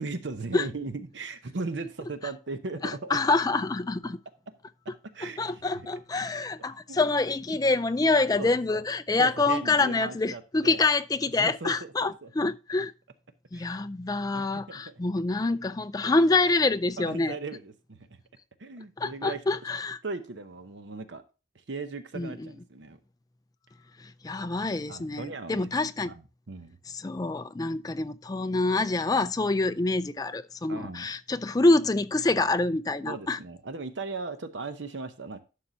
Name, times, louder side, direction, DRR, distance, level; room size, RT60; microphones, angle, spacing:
voice 1, 0.0-3.2 5.1-5.6 6.9-7.0 8.4-8.8 9.2-10.8 11.4-11.7 12.0-12.3 13.5-13.7 14.3-14.9 17.0-18.2 18.6-19.4 20.0-21.2 21.7-23.0 24.9-25.6 26.0-26.2 26.5-26.8 30.7-31.1 33.1-35.4, right 3 dB, 70° right, 0.8 m, -37 dB
voice 2, 2.8-4.2 5.2-12.9 13.5-17.4 19.0-20.0 22.1-22.5 24.0-26.1 26.9-33.4, left 3 dB, 20° left, 0.4 m, -26 dB
11.5 x 6.6 x 2.7 m
head